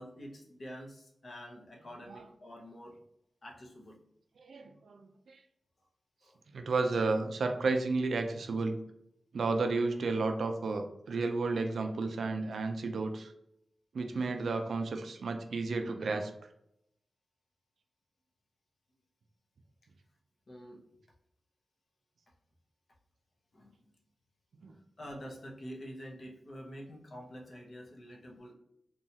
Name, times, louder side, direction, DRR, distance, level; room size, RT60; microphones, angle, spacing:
voice 1, 0.0-3.0 3.4-4.0 6.2-6.4 20.5-20.8 23.5-24.0 25.0-28.5, equal, 50° left, -1 dB, 0.7 m, -47 dB
voice 2, 4.4-5.4 6.5-8.8 9.3-13.3 13.9-16.3 24.6-24.7, right 3 dB, 80° right, 5 dB, 0.3 m, -32 dB
2.9 x 2.3 x 2.7 m, 0.78 s
wide cardioid pair, 125°, 0 cm